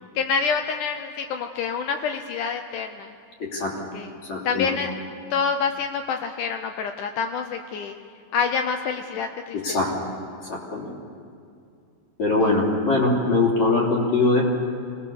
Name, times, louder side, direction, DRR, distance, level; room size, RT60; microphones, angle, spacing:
voice 1, 0.2-3.1 3.9-4.1 4.5-4.9 5.3-8.0 8.3-9.6, left 6 dB, 75° left, 6 dB, 2.1 m, -27 dB
voice 2, 3.4-3.8 4.3-4.8 9.5-10.0 10.5-10.9 12.2-14.5, left 3 dB, 55° left, -2 dB, 4.3 m, -22 dB
25.0 x 19.0 x 7.1 m, 2.4 s
omnidirectional pair, 4.0 m